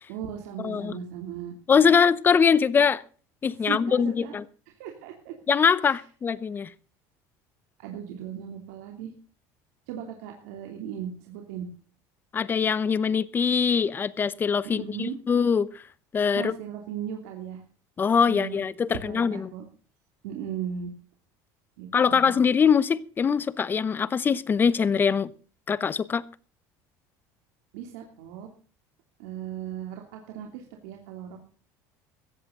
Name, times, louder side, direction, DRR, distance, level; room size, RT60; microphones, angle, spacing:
voice 1, 0.1-2.0 3.6-4.3 4.8-5.3 5.8-6.0 7.8-9.1 9.9-11.7 14.7-15.2 16.3-17.6 18.2-18.6 18.9-19.6 20.2-20.9 21.8-22.4 27.7-28.5 29.2-31.4, right 9 dB, 85° right, 2 dB, 3.0 m, -37 dB
voice 2, 0.6-0.9 1.7-3.0 3.4-4.4 5.5-6.7 12.3-15.7 16.1-16.5 18.0-19.5 21.9-25.3 25.7-26.2, left 6 dB, 25° left, 19 dB, 0.8 m, -22 dB
16.5 x 14.0 x 3.9 m, 0.39 s
cardioid pair, 130°, 8 cm